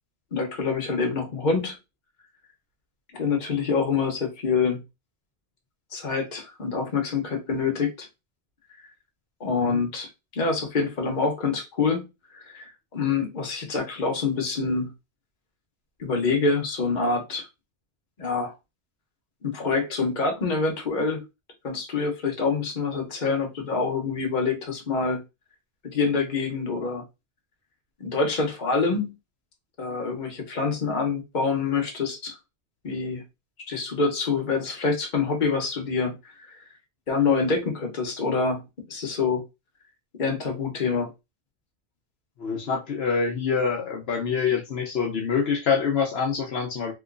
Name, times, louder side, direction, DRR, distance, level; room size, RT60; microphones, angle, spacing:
voice 1, 0.3-1.8 3.1-4.8 5.9-8.1 9.4-12.0 12.3-14.9 16.0-17.5 18.2-18.5 19.4-21.2 21.6-25.2 25.8-27.0 28.0-29.1 29.8-32.4 32.8-33.2 33.7-36.2 37.1-38.6 38.9-39.4 40.2-41.1, left 4 dB, 50° left, 1.0 m, -26 dB
voice 2, 42.4-46.9, left 6 dB, 75° left, 0.9 m, -26 dB
3.0 x 3.0 x 2.5 m
omnidirectional pair, 1.1 m